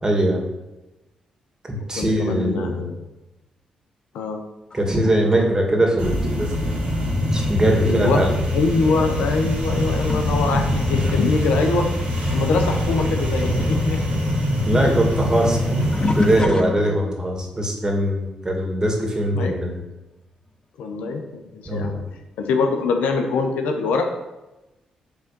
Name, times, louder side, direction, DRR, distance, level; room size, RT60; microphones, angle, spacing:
voice 1, 0.0-0.4 1.7-2.8 4.7-6.6 7.3-8.3 10.9-11.1 14.7-15.9 16.2-19.8 21.7-22.1, right 1 dB, 25° right, 1 dB, 2.3 m, -21 dB
voice 2, 1.9-3.0 4.1-4.4 7.8-11.9 12.3-14.2 14.7-14.8 15.4-15.8 16.8-17.0 19.3-19.5 20.8-24.1, left 4 dB, 80° left, 4 dB, 0.9 m, -24 dB
sound 1, 4.7-12.7 13.0-17.3 17.9-18.2 20.5-20.6 21.5-21.6, left 2 dB, 35° left, 0.7 m, -33 dB
sound 2, 6.0-16.4, left 1 dB, 80° right, 2.3 m, -23 dB
7.3 x 3.9 x 6.0 m, 1.0 s
supercardioid pair, 45°, 3 cm